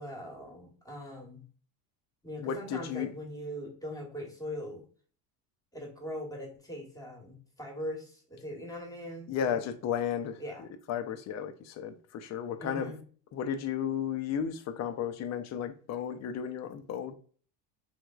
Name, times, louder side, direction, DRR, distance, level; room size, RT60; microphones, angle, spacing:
voice 1, 0.0-1.4 2.2-4.8 5.7-9.6 10.4-10.6 12.6-13.0, equal, 10° left, 1.1 m, -41 dB
voice 2, 2.4-3.1 9.3-12.9 13.3-17.1, left 8 dB, 40° left, 0.5 m, -34 dB
3.5 x 3.1 x 2.3 m
supercardioid pair, 110°, 43 cm